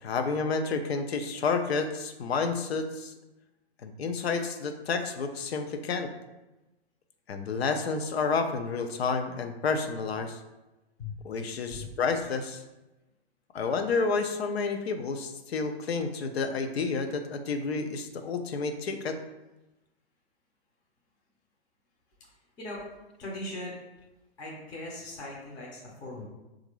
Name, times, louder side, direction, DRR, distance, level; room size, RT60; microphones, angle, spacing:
voice 1, 0.0-3.1 3.8-6.1 7.3-10.4 11.2-12.6 13.5-19.2, left 4 dB, 75° left, 7 dB, 0.5 m, -30 dB
voice 2, 23.2-23.8 24.4-26.2, left 2 dB, 15° left, -3 dB, 0.5 m, -39 dB
3.8 x 2.5 x 3.0 m, 1.0 s
hypercardioid pair, 130°, 32 cm